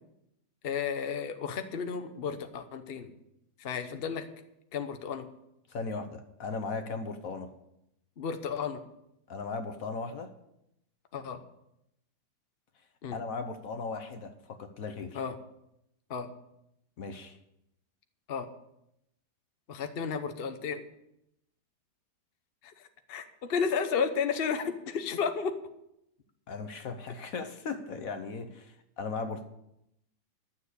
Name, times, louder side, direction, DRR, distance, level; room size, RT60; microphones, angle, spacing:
voice 1, 0.6-3.1 3.6-4.3 4.7-5.3 8.2-8.8 11.1-11.4 13.0-13.2 15.1-15.4 16.1-16.3 18.3-18.5 19.7-20.8 22.8-25.5, left 6 dB, 40° left, 7 dB, 1.0 m, -32 dB
voice 2, 5.7-7.5 9.3-10.3 13.1-15.2 17.0-17.4 26.5-29.4, left 4 dB, 60° left, 8 dB, 1.2 m, -37 dB
12.0 x 7.4 x 8.2 m, 0.82 s
omnidirectional pair, 1.8 m